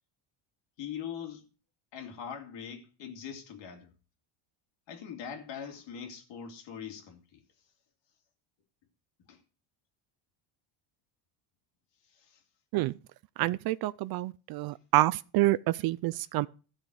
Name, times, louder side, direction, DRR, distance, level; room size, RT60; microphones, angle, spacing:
voice 1, 0.8-1.4 1.9-3.9 4.9-7.4 9.3-9.4 12.0-12.4, left 8 dB, 60° left, 2.7 m, -42 dB
voice 2, 13.4-16.5, right 17 dB, 50° right, 0.5 m, -28 dB
14.0 x 6.2 x 6.4 m
cardioid pair, 135°, 49 cm